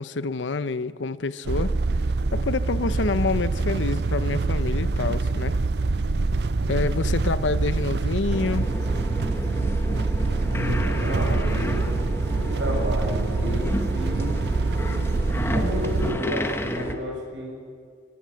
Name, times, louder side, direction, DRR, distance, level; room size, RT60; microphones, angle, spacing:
voice 1, 0.0-1.7 2.3-5.6 6.7-8.7 9.9-10.0, left 3 dB, 90° left, 15 dB, 0.7 m, -27 dB
sound 1, 1.4-16.1, right 3 dB, 65° right, 0.5 m, -25 dB
sound 2, 1.9-8.3, equal, 40° right, 8.0 m, -39 dB
sound 3, 8.3-16.9, left 1 dB, 15° left, 1.1 m, -32 dB
voice 2, 10.4-11.9 12.3-14.4 15.5-17.6, left 1 dB, 85° right, 1 dB, 6.2 m, -30 dB
24.0 x 17.0 x 8.4 m, 2.2 s
head